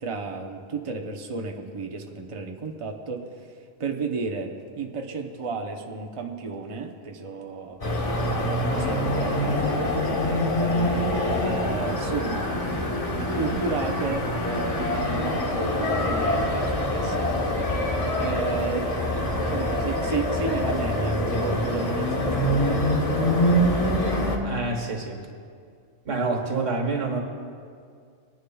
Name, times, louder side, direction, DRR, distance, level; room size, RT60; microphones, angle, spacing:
voice 1, 0.0-3.2 3.8-7.8 8.4-10.9 11.4-12.5 13.2-17.7 18.2-18.9 19.4-23.9, right 4 dB, 30° right, 3 dB, 0.7 m, -33 dB
sound 1, 7.8-24.4, left 1 dB, 30° left, 1.0 m, -25 dB
voice 2, 19.2-19.7 24.4-25.3 26.1-27.2, right 3 dB, 90° right, 2 dB, 1.7 m, -28 dB
19.5 x 10.0 x 2.3 m, 2.2 s
omnidirectional pair, 1.2 m